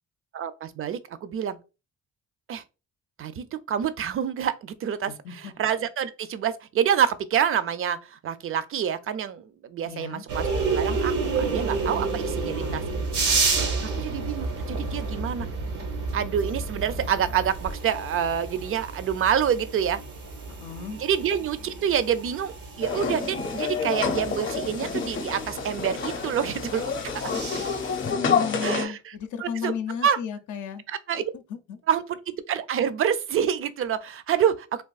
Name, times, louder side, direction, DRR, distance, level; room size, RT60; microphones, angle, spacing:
voice 1, 0.3-1.6 2.5-2.6 3.2-12.8 13.2-13.4 13.8-15.5 16.1-20.0 21.0-26.9 27.2-27.3 28.6-29.1 29.4-29.7 30.0-30.2 30.9-31.2 31.9-34.8, right 8 dB, 45° right, 0.4 m, -27 dB
voice 2, 5.1-5.5 9.8-10.2 12.3-13.0 20.5-21.0 28.0-30.8 31.5-31.8, left 7 dB, 80° left, 0.6 m, -35 dB
sound 1, 10.3-28.1, right 4 dB, 90° right, 1.0 m, -31 dB
sound 2, 22.8-28.9, left 5 dB, 40° left, 0.7 m, -28 dB
3.5 x 2.5 x 2.3 m
cardioid pair, 90°, 30 cm